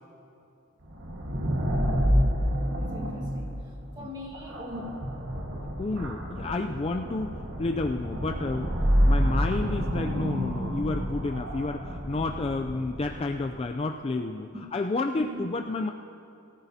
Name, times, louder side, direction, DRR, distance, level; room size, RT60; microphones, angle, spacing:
sound 1, 0.9-13.5, equal, 60° right, 1.5 m, -28 dB
voice 1, 1.6-5.1 14.5-14.6 15.1-15.5, left 1 dB, 20° right, 0 dB, 1.5 m, -42 dB
voice 2, 5.8-7.3 7.6-8.8 9.0-15.9, left 3 dB, 25° left, 4 dB, 0.3 m, -30 dB
22.0 x 14.0 x 2.8 m, 2.7 s
head